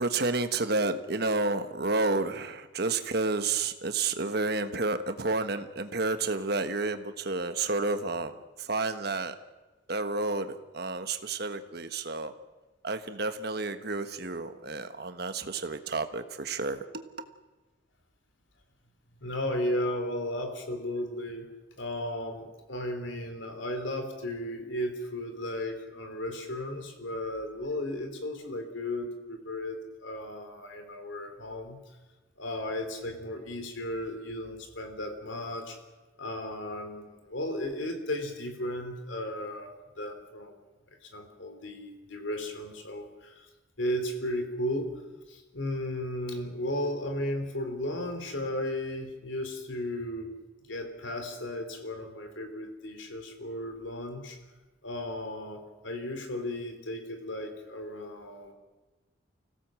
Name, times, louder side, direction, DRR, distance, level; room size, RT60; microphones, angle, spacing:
voice 1, 0.0-9.3 9.9-12.3 12.8-16.8, right 3 dB, 50° right, 9 dB, 1.3 m, -30 dB
voice 2, 19.2-21.5 21.8-31.8 32.4-35.8 36.2-40.6 41.0-43.5 43.8-45.0 45.3-50.3 50.7-54.4 54.8-58.5, left 1 dB, 70° left, 6 dB, 3.3 m, -35 dB
25.0 x 16.5 x 7.6 m, 1.2 s
head